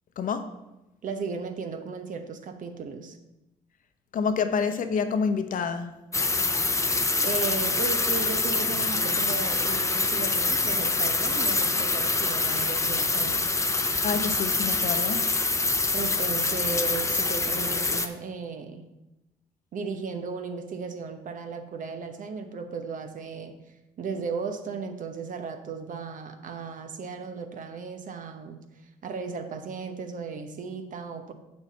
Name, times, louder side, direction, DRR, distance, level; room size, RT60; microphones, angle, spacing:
voice 1, 0.2-0.5 4.1-6.0 14.0-15.3, left 5 dB, 55° left, 8 dB, 0.8 m, -27 dB
voice 2, 1.0-3.2 7.2-13.5 15.9-18.9 19.7-23.6 24.0-28.6 29.0-31.3, right 5 dB, 50° right, 7 dB, 1.0 m, -35 dB
sound 1, 6.1-18.1, left 3 dB, 15° left, 0.7 m, -25 dB
7.6 x 6.3 x 4.2 m, 0.96 s
supercardioid pair, 60°, 17 cm